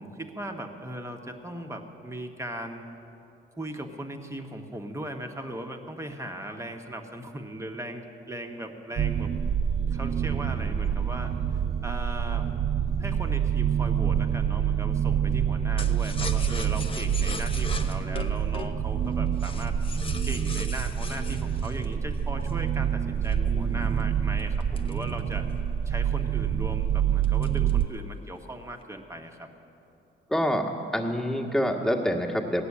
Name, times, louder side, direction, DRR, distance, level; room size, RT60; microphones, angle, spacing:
voice 1, 0.0-2.9 3.5-9.3 9.9-12.5 13.0-19.7 20.3-25.5 25.8-29.5, right 1 dB, 15° right, 4 dB, 1.4 m, -38 dB
sound 1, 9.0-27.9, right 8 dB, 30° right, 0.4 m, -27 dB
voice 2, 10.3-11.0 23.3-24.1 30.3-32.7, equal, 5° left, 1 dB, 1.6 m, -28 dB
sound 2, 15.8-22.7 23.2-25.7 26.1-26.2 26.5-26.8 27.2-27.9 28.3-28.8, left 4 dB, 25° left, 0.9 m, -40 dB
17.5 x 6.9 x 9.7 m, 2.8 s
cardioid pair, 90°, 20 cm